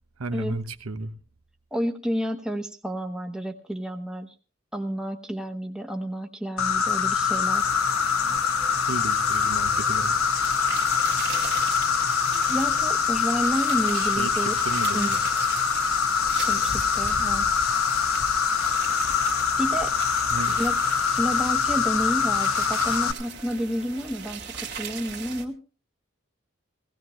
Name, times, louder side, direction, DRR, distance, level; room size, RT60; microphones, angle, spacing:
voice 1, 0.2-1.1 8.8-10.2 13.9-15.2 20.3-20.6, right 3 dB, 85° right, 1.1 m, -33 dB
voice 2, 1.7-4.4 4.7-7.7 12.5-14.6 14.9-15.1 16.4-17.5 19.6-19.9 20.5-20.8 21.1-24.5 24.7-25.6, equal, 5° right, 0.9 m, -30 dB
Insect, 6.6-23.1, left 6 dB, 80° left, 1.1 m, -24 dB
sound 1, 7.6-25.5, right 6 dB, 50° right, 1.9 m, -39 dB
17.5 x 16.5 x 3.1 m
head